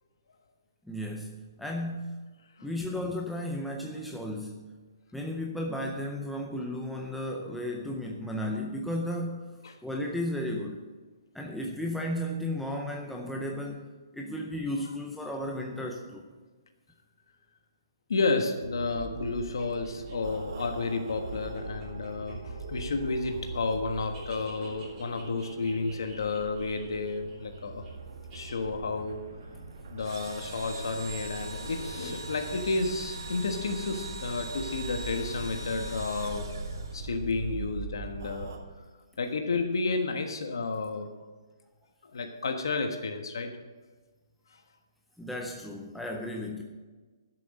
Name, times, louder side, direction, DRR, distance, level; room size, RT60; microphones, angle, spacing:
voice 1, 0.8-2.2 2.6-4.7 5.1-9.4 9.8-10.8 11.3-13.9 14.1-16.2 45.2-46.6, left 1 dB, ahead, 0 dB, 0.5 m, -34 dB
voice 2, 18.1-27.8 28.3-29.2 29.9-36.5 36.9-38.5 39.2-41.1 42.0-43.5, left 3 dB, 70° left, 5 dB, 1.4 m, -31 dB
sound 1, 18.6-38.6, right 3 dB, 45° right, 1.6 m, -41 dB
sound 2, 19.6-23.6 23.8-27.9 28.3-28.6, right 3 dB, 15° right, 3.2 m, -52 dB
Engine / Drill, 30.0-37.3, right 3 dB, 65° right, 3.0 m, -43 dB
12.5 x 7.6 x 6.4 m, 1.3 s
hypercardioid pair, 175°, 2 cm